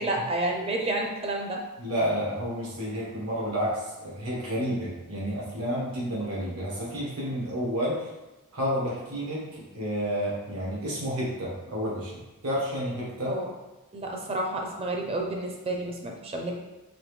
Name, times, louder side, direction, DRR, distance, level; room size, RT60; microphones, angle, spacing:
voice 1, 0.0-1.6 13.2-13.5 13.9-16.6, right 2 dB, 25° right, 1 dB, 0.6 m, -30 dB
voice 2, 1.8-8.1 8.5-12.1 12.4-13.3, equal, 80° right, -5 dB, 1.4 m, -30 dB
4.2 x 2.8 x 3.2 m, 1.1 s
head